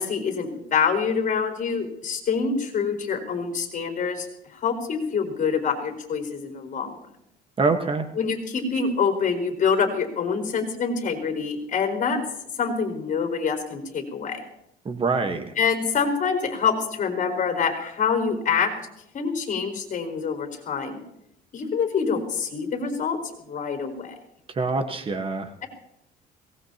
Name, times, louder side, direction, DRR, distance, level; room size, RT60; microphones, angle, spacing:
voice 1, 0.0-7.0 8.2-12.2 12.6-14.4 15.6-18.7 19.1-21.0 21.5-23.2 23.5-24.1, left 5 dB, 50° left, 4 dB, 4.5 m, -26 dB
voice 2, 7.6-8.1 14.8-15.4 24.5-25.5, right 4 dB, 30° right, 7 dB, 1.4 m, -24 dB
23.0 x 19.0 x 2.9 m, 0.76 s
cardioid pair, 110°, 17 cm